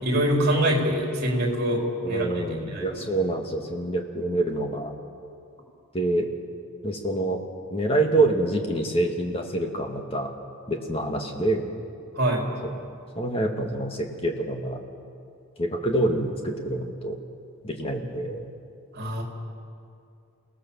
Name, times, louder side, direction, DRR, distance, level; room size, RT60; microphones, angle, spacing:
voice 1, 0.0-3.0 12.2-12.5 18.9-19.2, equal, 45° right, 0 dB, 4.2 m, -25 dB
voice 2, 2.0-4.9 5.9-6.3 6.8-7.4 7.7-10.3 10.7-11.7 12.6-12.7 13.2-14.8 15.6-17.2 17.6-18.5, right 2 dB, 25° left, 3 dB, 2.0 m, -26 dB
29.5 x 17.5 x 7.2 m, 2.5 s
head